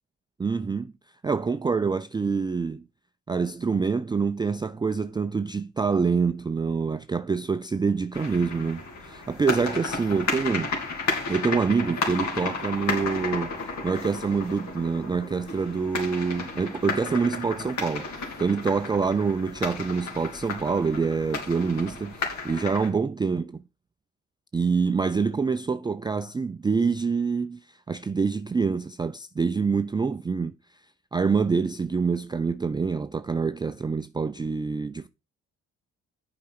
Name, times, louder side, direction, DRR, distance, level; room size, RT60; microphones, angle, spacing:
voice 1, 0.4-0.9 1.2-2.8 3.3-10.7 11.3-23.6 24.5-30.5 31.1-35.1, right 5 dB, 15° right, 0.3 m, -26 dB
sound 1, 8.1-22.9, left 4 dB, 65° left, 3.0 m, -33 dB
7.4 x 4.9 x 5.8 m
cardioid pair, 90°, 30 cm